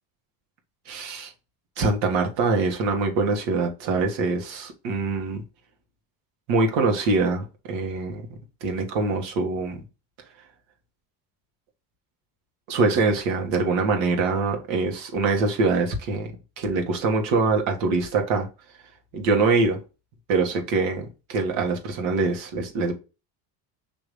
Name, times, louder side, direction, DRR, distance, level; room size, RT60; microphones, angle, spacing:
voice 1, 0.9-1.3 1.8-5.4 6.5-8.2 8.6-9.8 12.7-18.5 19.1-19.8 20.3-22.9, right 3 dB, 80° right, 1.6 m, -24 dB
5.4 x 3.0 x 3.1 m
cardioid pair, 105°, 45 cm